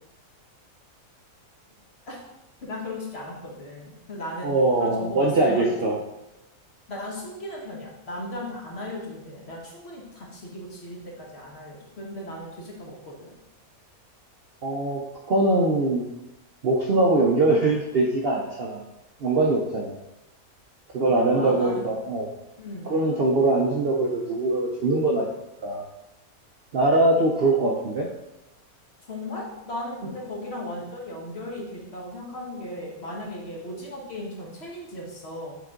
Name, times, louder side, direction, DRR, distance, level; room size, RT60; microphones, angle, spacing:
voice 1, 2.6-4.5 4.8-5.9 6.9-13.3 21.1-21.8 22.6-23.0 29.1-35.5, left 1 dB, 45° left, -2 dB, 1.4 m, -36 dB
voice 2, 4.4-6.0 14.6-16.0 16.6-18.9 19.2-20.0 20.9-22.3 22.9-25.3 25.6-25.8 26.7-28.1, right 2 dB, 55° right, -1 dB, 0.7 m, -22 dB
6.8 x 3.8 x 3.7 m, 0.90 s
omnidirectional pair, 1.6 m